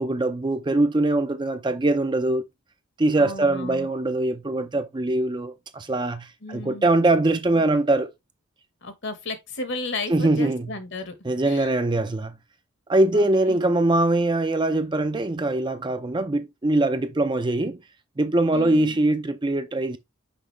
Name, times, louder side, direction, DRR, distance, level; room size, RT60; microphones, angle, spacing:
voice 1, 0.0-2.4 3.0-8.1 10.1-10.7 11.2-12.4 12.9-17.8 18.2-20.0, right 2 dB, 20° right, 0.5 m, -22 dB
voice 2, 3.2-3.9 6.4-6.9 8.8-11.2 11.4-11.7 13.1-13.6 18.5-19.0, left 3 dB, 55° left, 1.3 m, -34 dB
5.9 x 5.0 x 3.2 m
head